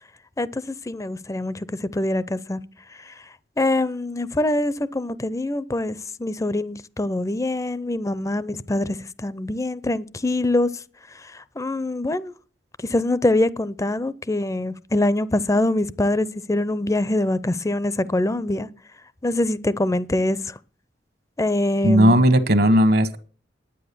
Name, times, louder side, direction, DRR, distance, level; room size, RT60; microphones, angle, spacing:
voice 1, 0.4-2.6 3.1-3.2 3.6-10.7 11.3-12.3 12.8-18.7 19.2-20.5 21.4-22.2, left 1 dB, 20° left, 0.5 m, -24 dB
voice 2, 21.8-23.2, equal, 60° right, 1.2 m, -16 dB
10.0 x 9.4 x 6.8 m
head